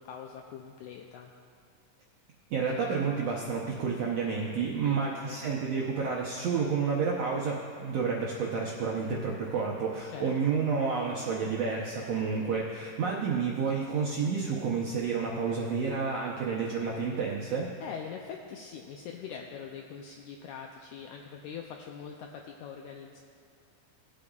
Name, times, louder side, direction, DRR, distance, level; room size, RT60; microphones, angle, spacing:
voice 1, 0.0-1.3 4.8-5.4 10.1-10.6 12.3-12.6 17.8-23.2, left 7 dB, 85° left, 2 dB, 1.7 m, -43 dB
voice 2, 2.5-17.7, right 5 dB, 80° right, -3 dB, 1.5 m, -30 dB
18.5 x 8.6 x 2.4 m, 2.5 s
omnidirectional pair, 3.9 m